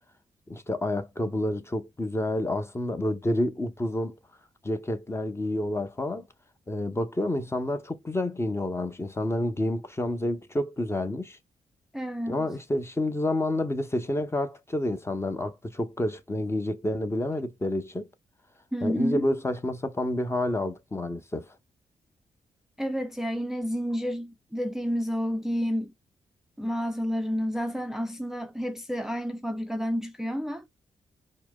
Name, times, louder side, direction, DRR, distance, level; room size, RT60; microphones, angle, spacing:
voice 1, 0.5-4.2 4.6-6.2 6.7-11.4 12.3-18.1 18.8-21.5, left 1 dB, 20° left, 0.8 m, -29 dB
voice 2, 11.9-12.5 18.7-19.3 22.8-25.9 26.6-30.6, equal, 5° right, 0.4 m, -30 dB
4.5 x 2.0 x 2.2 m
supercardioid pair, 45°, 13 cm